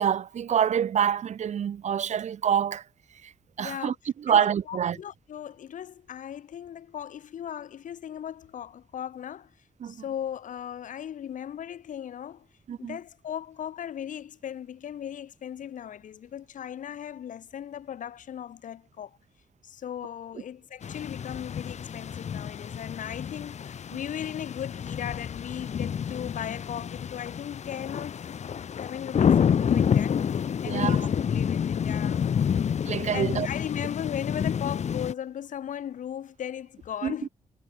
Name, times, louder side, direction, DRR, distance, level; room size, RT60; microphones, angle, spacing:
voice 1, 0.0-2.8 3.2-3.3 3.6-3.9 4.2-5.0 9.8-10.0 12.7-13.0 30.6-31.1 32.8-33.5 37.0-37.3, right 8 dB, 65° right, 0.7 m, -26 dB
voice 2, 3.6-4.0 4.3-4.4 4.7-9.5 9.8-12.5 12.8-19.2 19.6-28.2 28.8-31.0 31.3-32.3 32.8-37.3, left 9 dB, 80° left, 2.2 m, -37 dB
sound 1, 20.8-35.1, left 7 dB, 60° left, 1.0 m, -28 dB
cardioid pair, 70°, 13 cm